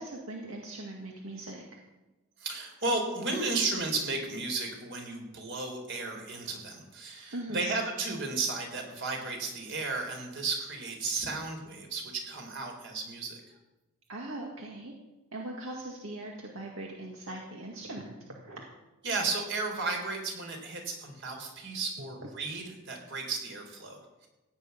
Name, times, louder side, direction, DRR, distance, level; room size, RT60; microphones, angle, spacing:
voice 1, 0.0-1.6 7.3-7.7 14.1-14.9 15.3-18.6, right 1 dB, 85° right, -1 dB, 2.1 m, -40 dB
voice 2, 2.4-13.5 19.0-24.3, right 3 dB, 60° right, 3 dB, 3.9 m, -34 dB
16.5 x 6.5 x 9.5 m, 1.1 s
head